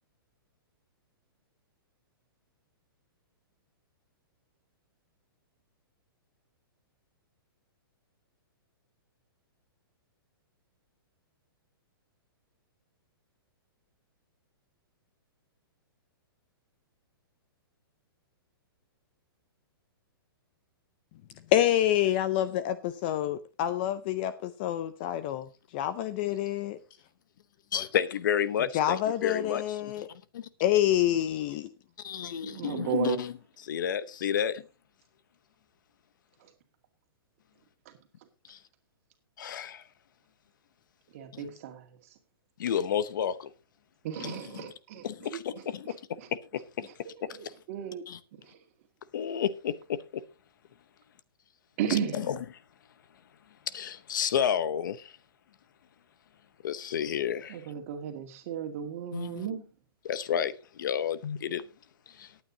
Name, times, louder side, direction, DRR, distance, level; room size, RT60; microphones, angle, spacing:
voice 1, 21.5-25.5 25.7-26.8 27.7-27.9 28.7-30.1 30.6-31.7, left 12 dB, 25° left, 0.5 m, -27 dB
voice 2, 27.7-29.9 30.3-30.5 32.0-33.3 33.6-34.6 38.5-38.6 39.4-39.8 41.3-41.4 42.6-43.5 44.2-44.6 45.0-45.9 46.5-46.9 48.1-48.2 49.1-50.0 52.1-52.4 53.7-55.1 56.6-57.6 59.1-59.5 60.0-61.6 62.2-62.3, left 9 dB, 55° left, 0.9 m, -31 dB
voice 3, 32.4-33.2 36.4-36.5 37.9-38.0 41.1-42.0 44.0-46.3 46.8-48.0 48.4-48.6 51.8-52.3 57.5-59.7, right 9 dB, 35° right, 2.2 m, -35 dB
18.5 x 9.2 x 2.8 m
hypercardioid pair, 170°, 12 cm